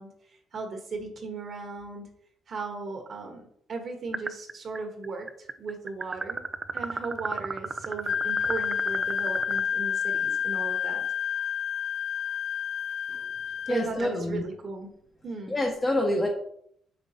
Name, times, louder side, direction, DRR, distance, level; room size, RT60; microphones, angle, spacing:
voice 1, 0.0-2.1 2.5-6.4 6.7-11.0 13.7-14.9 15.2-15.5, right 3 dB, 50° right, 3 dB, 1.2 m, -37 dB
sound 1, 4.1-4.8 5.0-9.6, right 4 dB, 30° right, 0.4 m, -33 dB
Wind instrument woodwind instrument, 8.1-13.9, left 8 dB, 75° left, 0.3 m, -29 dB
voice 2, 13.7-14.4 15.5-16.3, left 1 dB, 20° left, 0 dB, 1.2 m, -26 dB
6.3 x 5.3 x 2.9 m, 0.69 s
cardioid pair, 90°, 0 cm